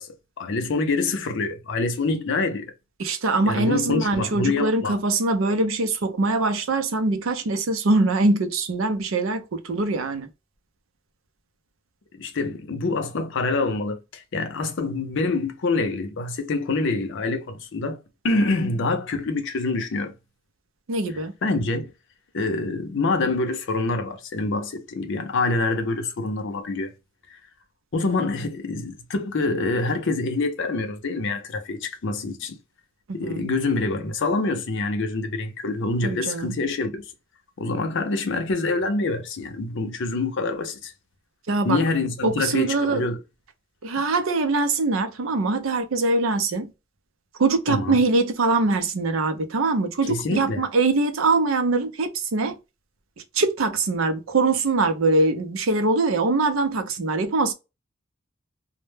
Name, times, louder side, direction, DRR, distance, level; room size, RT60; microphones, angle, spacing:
voice 1, 0.0-2.7 3.5-5.0 12.1-18.0 18.2-20.1 21.4-21.9 22.3-26.9 27.3-27.4 27.9-32.6 33.1-37.0 37.6-40.9 41.6-43.2 47.7-48.0 50.0-50.7, left 3 dB, 60° left, 0.5 m, -26 dB
voice 2, 3.0-10.3 20.9-21.3 33.2-33.5 36.0-36.5 41.5-41.8 42.2-43.0 43.8-46.7 47.4-52.6 53.3-57.5, right 3 dB, 70° right, 0.5 m, -23 dB
2.1 x 2.1 x 3.1 m
head